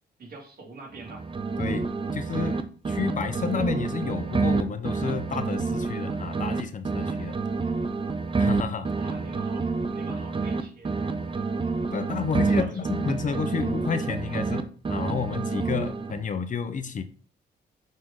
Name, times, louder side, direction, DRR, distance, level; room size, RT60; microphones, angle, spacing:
voice 1, 0.2-1.3 9.0-11.5 12.5-12.9, right 3 dB, 55° right, 0 dB, 2.4 m, -44 dB
sound 1, 0.9-2.6 2.9-6.6 6.9-10.6 10.9-14.6 14.9-16.3, right 4 dB, 30° right, 0.7 m, -28 dB
voice 2, 1.6-7.3 8.4-8.9 11.9-17.0, left 6 dB, 45° left, 10 dB, 0.7 m, -31 dB
7.3 x 3.7 x 3.8 m, 0.39 s
cardioid pair, 90°, 18 cm